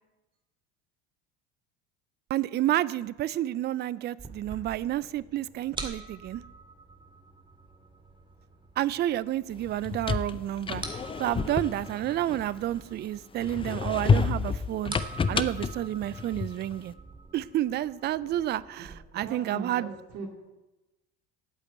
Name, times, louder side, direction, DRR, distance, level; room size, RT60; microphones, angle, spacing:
voice 1, 2.3-6.4 8.8-10.8 11.2-14.9 15.3-16.9 17.3-19.9, right 13 dB, 35° right, 0.4 m, -30 dB
sound 1, 4.2-19.0, right 3 dB, 15° right, 2.0 m, -46 dB
sound 2, 9.7-12.9 13.4-16.8, left 5 dB, 20° left, 0.6 m, -29 dB
voice 2, 18.8-20.3, right 3 dB, 60° right, 2.4 m, -40 dB
8.5 x 8.4 x 8.8 m
supercardioid pair, 105°, 29 cm